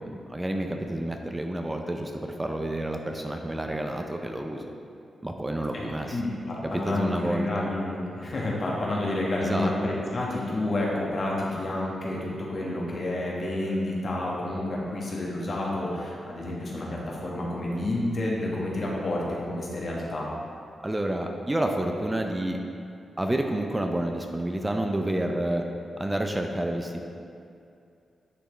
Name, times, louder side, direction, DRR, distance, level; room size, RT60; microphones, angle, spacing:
voice 1, 0.0-2.1 2.4-4.7 5.2-6.2 6.6-7.7 9.4-9.7 20.8-22.6 23.2-25.6 26.0-27.0, right 1 dB, 15° right, 3 dB, 0.5 m, -29 dB
voice 2, 6.1-20.3, left 1 dB, 55° left, -4 dB, 1.4 m, -29 dB
10.0 x 3.4 x 3.2 m, 2.5 s
cardioid pair, 60°, 0 cm